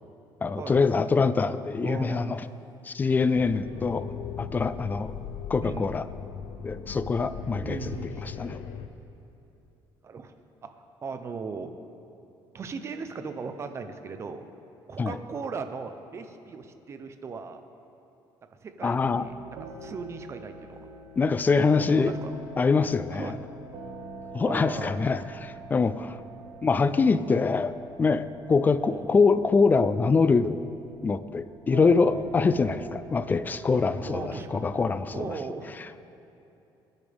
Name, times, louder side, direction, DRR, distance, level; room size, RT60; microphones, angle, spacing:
voice 1, 0.4-2.4 2.8-4.1 4.4-5.1 5.5-6.1 6.6-8.0 8.2-8.6 15.0-15.2 18.8-19.3 21.2-22.1 22.6-23.4 24.3-26.2 26.6-27.7 28.0-30.6 31.0-35.3, left 4 dB, 20° left, 13 dB, 0.3 m, -24 dB
voice 2, 1.8-2.5 5.6-5.9 7.6-8.3 10.0-10.3 10.6-11.7 12.5-14.4 14.9-17.6 18.6-19.3 19.8-20.9 21.8-22.3 23.1-23.4 24.4-25.0 28.8-29.1 31.9-32.2 34.1-34.6 35.1-35.7, right 5 dB, 30° right, 8 dB, 0.8 m, -37 dB
sound 1, 3.4-8.9, left 7 dB, 85° left, 0.8 m, -38 dB
sound 2, 19.0-35.1, right 4 dB, 75° right, 1.2 m, -44 dB
21.0 x 10.5 x 3.5 m, 2.9 s
cardioid pair, 160°, 9 cm